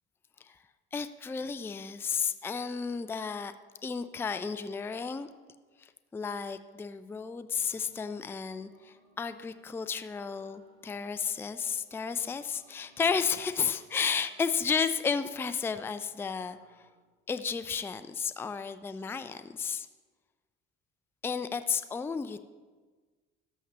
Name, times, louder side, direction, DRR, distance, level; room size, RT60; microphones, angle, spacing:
voice 1, 0.9-3.5 3.8-5.3 5.8-16.9 17.3-19.9 21.2-22.4, left 6 dB, 5° left, 12 dB, 0.3 m, -33 dB
sound 1, 7.6-16.9, right 1 dB, 65° right, 2.9 m, -64 dB
12.5 x 7.8 x 3.1 m, 1.4 s
hypercardioid pair, 55°, 35 cm